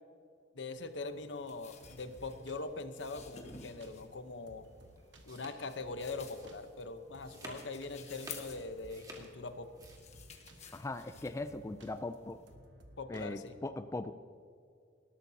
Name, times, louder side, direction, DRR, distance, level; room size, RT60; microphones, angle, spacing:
voice 1, 0.5-4.7 5.2-9.7 13.0-13.6, left 3 dB, 75° left, 9 dB, 0.9 m, -42 dB
sound 1, 0.8-12.5, left 5 dB, 35° left, 1.4 m, -55 dB
sound 2, 1.2-13.6, right 1 dB, 80° right, 1.4 m, -59 dB
sound 3, 4.8-10.0, right 1 dB, 20° right, 1.8 m, -52 dB
voice 2, 10.7-12.4 13.1-14.1, left 2 dB, 15° left, 9 dB, 0.3 m, -39 dB
19.0 x 12.5 x 2.8 m, 2.4 s
head